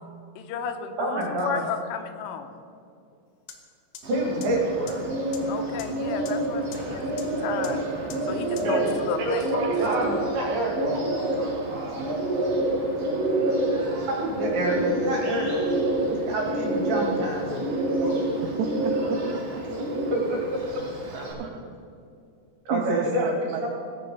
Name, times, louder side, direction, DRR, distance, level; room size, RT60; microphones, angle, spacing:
voice 1, 0.4-2.6 5.5-7.8 8.2-9.5, left 7 dB, 85° left, 6 dB, 3.3 m, -33 dB
voice 2, 1.0-1.6 4.1-5.0 8.6-11.9 14.1-15.7 16.1-17.6 18.0-18.2 20.1-20.8 21.1-21.5 22.7-23.7, right 1 dB, 55° right, -2 dB, 3.6 m, -28 dB
sound 1, 3.5-3.6 3.9-4.0 4.4-4.5 4.9-5.0 5.3-5.4 5.8-5.9 6.3-6.4 6.7-6.8 7.2-7.3 7.6-7.7 8.1-8.2 8.6-8.7, left 9 dB, 70° left, 2.7 m, -40 dB
Bird, 4.0-21.3, right 1 dB, 40° right, 3.0 m, -28 dB
voice 3, 18.4-19.9 22.7-23.8, right 7 dB, 85° right, 5 dB, 2.5 m, -32 dB
17.0 x 7.7 x 5.3 m, 2.5 s
omnidirectional pair, 5.7 m